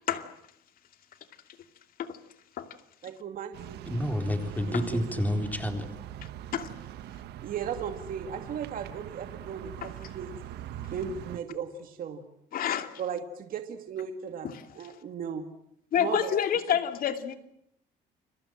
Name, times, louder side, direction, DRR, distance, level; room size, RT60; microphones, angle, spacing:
voice 1, 3.0-3.8 4.6-5.0 7.4-9.7 10.0-10.3 10.9-12.2 13.0-14.5 14.8-15.4 16.0-16.3, right 7 dB, 55° right, 2.3 m, -36 dB
sound 1, 3.5-11.4, right 12 dB, 75° right, 1.6 m, -42 dB
voice 2, 3.9-5.9, left 1 dB, 10° left, 3.9 m, -29 dB
voice 3, 9.8-10.1 12.5-12.9 14.4-14.9 15.9-17.4, left 9 dB, 60° left, 2.5 m, -29 dB
29.5 x 22.5 x 7.8 m
cardioid pair, 110°, 17 cm